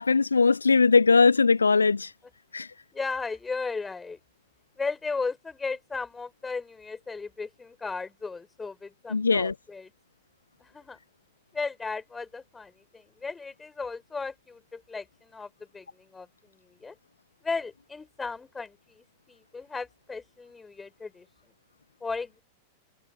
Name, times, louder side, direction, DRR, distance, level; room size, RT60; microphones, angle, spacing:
voice 1, 0.0-2.1 2.5-2.7 9.1-9.5, left 4 dB, 75° left, 0.6 m, -20 dB
voice 2, 2.9-4.2 4.8-9.9 10.6-11.0 11.5-15.9 16.1-16.3 16.7-16.9 17.4-21.2 22.0-22.4, left 4 dB, 15° left, 6.1 m, -35 dB
figure-of-eight pair, 90°, 0 cm